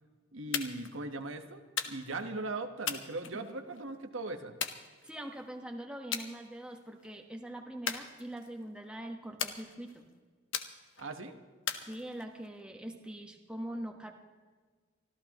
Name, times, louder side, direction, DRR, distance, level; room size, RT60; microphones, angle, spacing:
voice 1, 0.3-4.5 11.0-11.3, right 2 dB, 80° right, 6 dB, 1.2 m, -39 dB
sound 1, 0.5-0.9 1.8-2.2 2.9-3.8 4.6-5.4 6.1-6.3 6.7-7.1 7.9-8.6 9.4-10.0 10.5-11.1 11.7-12.5, left 8 dB, 70° left, 1.1 m, -38 dB
voice 2, 5.0-10.0 11.8-14.1, right 1 dB, 5° right, 3 dB, 1.2 m, -43 dB
25.0 x 14.5 x 3.0 m, 1.5 s
head